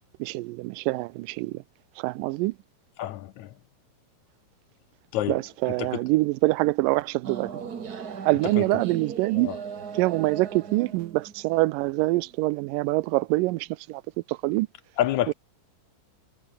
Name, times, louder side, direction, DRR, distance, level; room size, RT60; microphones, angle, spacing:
voice 1, 0.2-1.6 2.0-2.6 5.3-7.6 8.3-9.5 10.0-14.0 14.3-14.7 15.3-15.4, right 20 dB, 85° right, 2.2 m, -25 dB
voice 2, 3.0-3.5 5.1-5.4 5.8-6.0 8.6-8.7 9.4-9.6 15.0-15.3, left 13 dB, 70° left, 2.0 m, -28 dB
sound 1, 7.2-12.3, right 6 dB, 40° right, 1.4 m, -38 dB
omnidirectional pair, 3.9 m